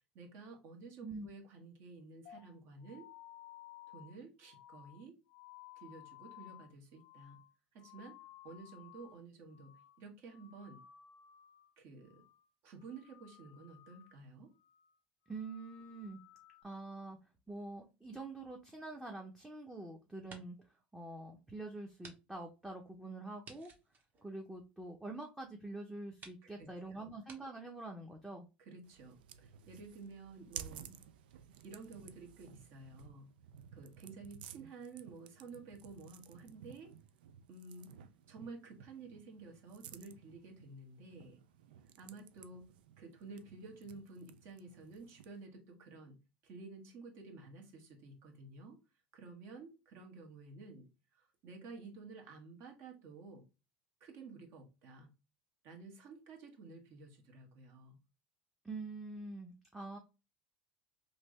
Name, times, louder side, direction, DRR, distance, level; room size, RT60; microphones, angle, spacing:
voice 1, 0.1-3.1 3.9-5.2 5.8-7.4 7.7-8.2 8.4-10.8 11.8-12.2 12.6-14.5 26.6-26.7 28.6-31.0 31.6-33.3 33.7-36.9 37.5-38.0 38.3-41.4 42.0-42.7 43.0-46.2 46.4-48.8 49.1-53.4 54.0-55.1 55.6-58.0, right 3 dB, 60° right, 3 dB, 1.2 m, -52 dB
sound 1, 2.3-9.2 9.5-10.0 10.3-11.7 12.0-12.5 12.8-14.2 14.6-14.9 15.3-16.6, left 13 dB, 70° left, 0.5 m, -57 dB
voice 2, 15.3-16.2 16.6-17.2 17.5-20.6 20.9-23.7 24.2-28.5 58.6-60.0, right 2 dB, 10° right, 1 dB, 0.6 m, -45 dB
sound 2, 18.8-19.8 20.1-20.7 21.2-21.3 22.0-22.2 22.5-22.6 23.4-25.0 25.7-25.8 26.2-26.4 27.2-27.4, right 4 dB, 35° right, 1.0 m, -56 dB
sound 3, 28.8-45.5, right 9 dB, 85° right, 0.3 m, -55 dB
3.2 x 2.7 x 3.1 m, 0.29 s
hypercardioid pair, 90°, 5 cm